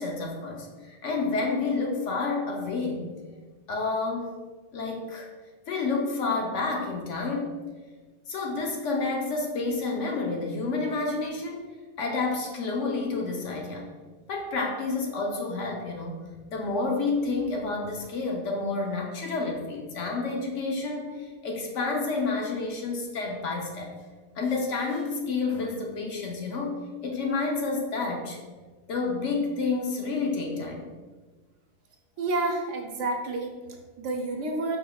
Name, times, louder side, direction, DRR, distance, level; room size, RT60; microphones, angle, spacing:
voice 1, 0.0-3.1 3.7-4.3 4.7-5.3 5.7-7.5 8.3-11.6 12.0-13.9 14.3-16.2 16.5-23.9 24.3-26.7 27.0-28.4 28.9-30.8, left 3 dB, 65° left, 0 dB, 1.0 m, -29 dB
voice 2, 32.2-34.8, right 2 dB, 65° right, 1 dB, 0.9 m, -30 dB
5.1 x 4.3 x 2.3 m, 1.4 s
omnidirectional pair, 1.4 m